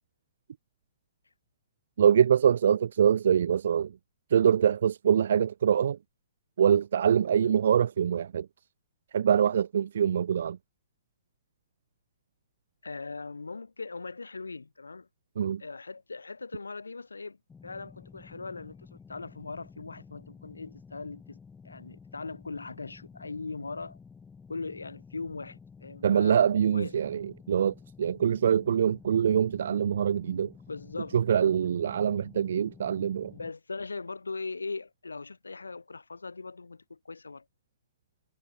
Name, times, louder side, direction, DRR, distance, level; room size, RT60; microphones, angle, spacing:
voice 1, 2.0-3.9 4.3-6.0 6.6-8.5 9.1-10.6 15.4-15.6 26.0-30.5 31.1-33.3, right 8 dB, 65° right, 0.3 m, -24 dB
voice 2, 12.8-15.1 15.6-17.4 17.6-21.4 21.6-24.0 24.5-26.4 26.7-26.9 30.7-31.2 33.3-37.4, left 3 dB, 85° left, 1.2 m, -40 dB
sound 1, 17.5-33.5, left 5 dB, 10° left, 6.1 m, -52 dB
figure-of-eight pair, 120°, 0 cm